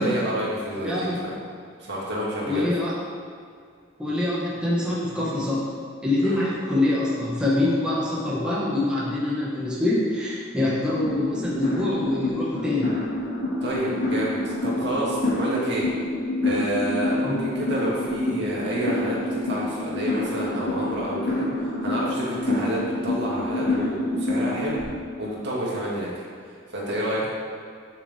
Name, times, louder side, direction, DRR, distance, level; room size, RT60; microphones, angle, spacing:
voice 1, 0.0-1.3 1.8-2.7 6.2-6.4 13.6-15.9 16.4-24.9 25.2-26.1 26.5-27.3, right 1 dB, 60° right, -5 dB, 2.4 m, -29 dB
voice 2, 2.5-2.9 4.0-5.7 6.0-12.9 17.2-17.4, left 2 dB, 5° right, -8 dB, 1.8 m, -25 dB
sound 1, 11.0-24.8, left 2 dB, 75° left, 2.5 m, -27 dB
12.0 x 6.0 x 3.7 m, 2.2 s
head